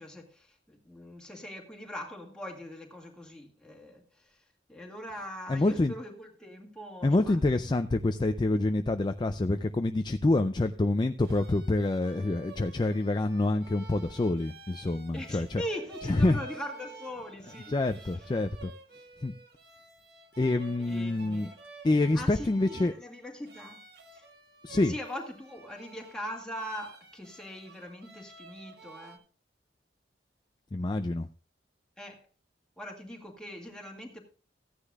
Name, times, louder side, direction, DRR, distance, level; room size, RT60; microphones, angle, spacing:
voice 1, 0.0-4.0 4.7-7.4 15.1-17.8 20.9-21.5 22.1-23.8 24.1-24.2 24.8-29.2 32.0-32.2 32.8-34.2, equal, 5° left, 2.0 m, -41 dB
voice 2, 5.5-5.9 7.0-15.6 16.0-16.4 17.7-18.7 19.2-19.3 20.4-21.5 21.8-22.9 24.6-24.9 30.7-31.3, left 2 dB, 25° left, 0.4 m, -27 dB
sound 1, 11.0-29.2, right 3 dB, 65° right, 1.5 m, -51 dB
15.0 x 9.8 x 2.4 m
head